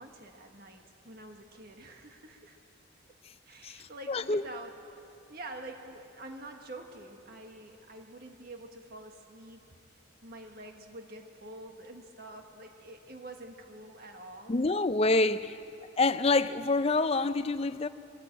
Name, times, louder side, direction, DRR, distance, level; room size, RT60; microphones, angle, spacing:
voice 1, 0.0-2.6 3.4-4.7 5.3-9.6 10.2-14.5 15.1-15.5, right 2 dB, 50° right, 1.5 m, -47 dB
voice 2, 4.1-4.4 14.5-15.5 16.0-17.9, left 3 dB, 30° left, 0.5 m, -26 dB
23.0 x 13.5 x 8.8 m
head